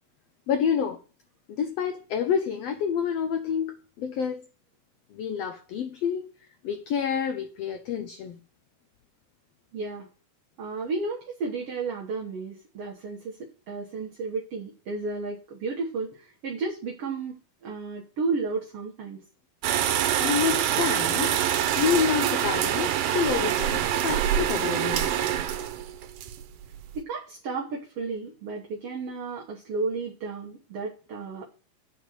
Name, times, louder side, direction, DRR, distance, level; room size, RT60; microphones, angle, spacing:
voice 1, 0.5-1.0 1.5-4.4 5.1-6.3 6.6-8.4 20.2-21.4 21.8-25.1, left 7 dB, 85° left, 1.4 m, -28 dB
voice 2, 9.7-10.1 10.6-19.2 26.9-31.5, right 4 dB, 55° right, 2.0 m, -33 dB
sound 1, 19.6-27.0, right 10 dB, 85° right, 2.5 m, -25 dB
8.2 x 5.0 x 6.5 m
omnidirectional pair, 3.7 m